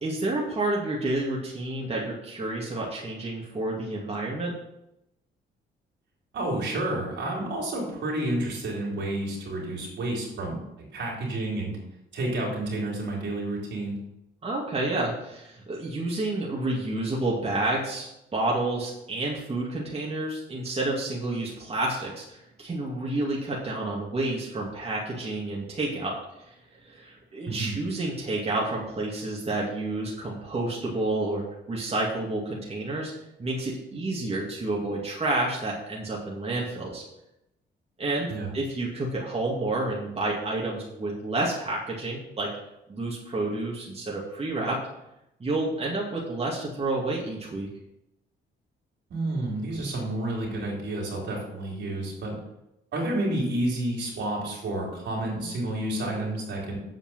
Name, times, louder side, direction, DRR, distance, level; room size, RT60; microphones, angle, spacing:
voice 1, 0.0-4.6 14.4-26.2 26.4-33.1 33.4-37.0 38.0-38.3 38.5-42.5 42.9-44.8 45.4-47.7, right 2 dB, 30° right, -4 dB, 2.3 m, -29 dB
voice 2, 6.3-10.6 10.9-11.8 12.1-14.0 27.5-27.7 38.3-38.5 49.1-52.3 52.9-56.8, right 1 dB, 65° right, -2 dB, 3.8 m, -30 dB
8.0 x 5.2 x 7.4 m, 0.87 s
cardioid pair, 90°, 20 cm